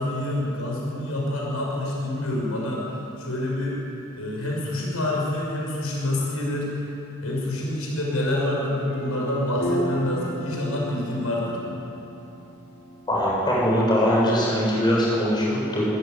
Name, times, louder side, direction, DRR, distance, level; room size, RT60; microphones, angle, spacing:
voice 1, 0.0-2.9 3.2-3.8 4.2-6.7 7.2-11.6, left 1 dB, 70° left, -2 dB, 6.4 m, -27 dB
sound 1, 8.9-13.3, right 1 dB, 45° left, 5.1 m, -32 dB
voice 2, 13.1-15.9, equal, 20° left, -5 dB, 7.3 m, -21 dB
25.0 x 15.5 x 9.5 m, 2.8 s
head